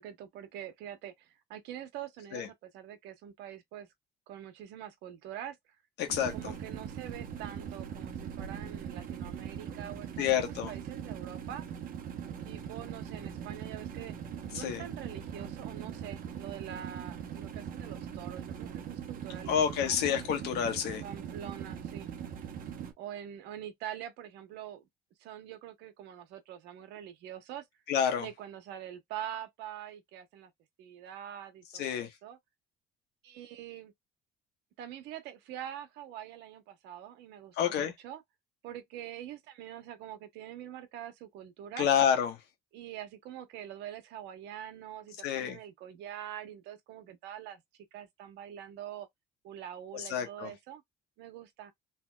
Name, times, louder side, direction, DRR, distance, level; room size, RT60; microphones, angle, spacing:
voice 1, 0.0-3.9 4.3-5.6 6.3-11.7 12.4-14.1 14.5-20.0 21.0-22.1 23.0-24.9 25.2-27.6 28.2-30.5 30.8-32.4 33.2-33.9 34.8-38.2 38.6-41.9 42.7-47.6 47.9-49.1 49.4-50.8 51.2-51.7, right 10 dB, 85° right, 1.1 m, -44 dB
voice 2, 6.0-6.5 10.2-10.7 14.5-14.8 19.5-21.0 27.9-28.3 31.8-32.1 37.6-37.9 41.8-42.4 45.2-45.6 49.9-50.5, left 9 dB, 85° left, 1.3 m, -29 dB
sound 1, 6.1-22.9, right 8 dB, 55° right, 1.0 m, -41 dB
3.4 x 3.0 x 2.3 m
cardioid pair, 110°, 17 cm